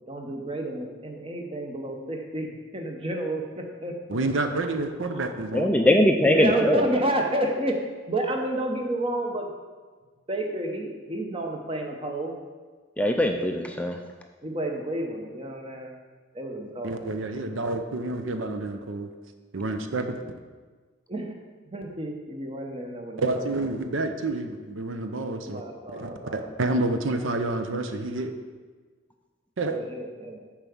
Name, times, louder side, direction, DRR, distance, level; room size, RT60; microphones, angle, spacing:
voice 1, 0.1-3.9 4.3-4.4 5.1-5.3 6.2-7.8 8.1-9.5 10.3-12.3 14.4-16.0 16.3-17.0 20.0-20.2 21.1-21.4 21.7-23.6 25.4-26.5 29.7-30.4, right 1 dB, 25° right, 3 dB, 0.9 m, -30 dB
voice 2, 4.1-5.7 16.8-19.1 19.5-20.2 23.2-25.6 25.9-28.3 29.6-29.8, right 2 dB, 75° right, 7 dB, 0.7 m, -29 dB
voice 3, 5.5-6.8 13.0-14.0, left 1 dB, 5° left, 4 dB, 0.3 m, -21 dB
7.1 x 4.8 x 7.1 m, 1.4 s
head